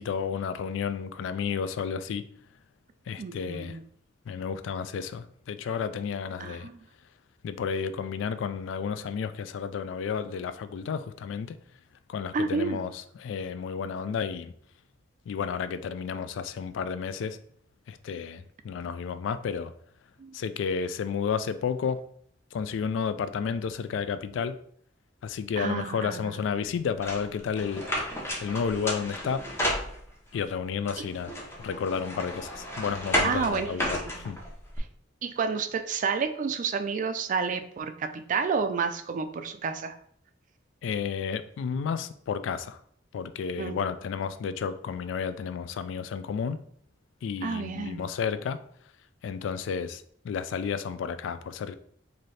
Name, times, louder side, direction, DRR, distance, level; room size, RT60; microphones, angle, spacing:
voice 1, 0.0-2.2 3.1-3.8 4.3-6.7 7.4-11.5 12.1-12.9 13.2-14.5 15.3-17.4 17.9-19.7 20.3-22.0 22.5-24.6 25.2-27.8 28.4-29.4 30.3-31.3 31.6-34.4 40.8-42.8 43.1-46.6 47.2-48.6 49.2-51.7, left 6 dB, 75° left, 12 dB, 0.3 m, -31 dB
voice 2, 3.2-3.8 6.4-6.9 12.3-12.8 20.2-20.3 25.6-26.4 31.0-31.1 33.2-33.8 34.0-34.2 35.2-40.0 43.6-43.8 47.4-48.0, right 5 dB, 45° right, 9 dB, 0.3 m, -30 dB
sound 1, 27.0-30.4 30.9-34.8, equal, 15° left, 0.7 m, -32 dB
4.0 x 2.6 x 3.2 m, 0.63 s
head